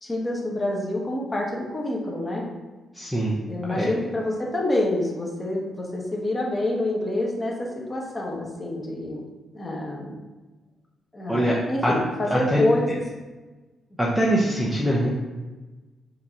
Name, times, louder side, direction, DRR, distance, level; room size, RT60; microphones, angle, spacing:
voice 1, 0.0-2.4 3.5-9.2 9.5-10.2 11.1-13.0, left 1 dB, 15° left, -2 dB, 1.1 m, -27 dB
voice 2, 2.9-3.3 3.7-3.9 11.3-11.5 11.8-11.9 12.3-12.7 14.0-15.1, equal, ahead, -4 dB, 0.7 m, -23 dB
7.4 x 2.8 x 5.6 m, 1.2 s
wide cardioid pair, 175°, 0 cm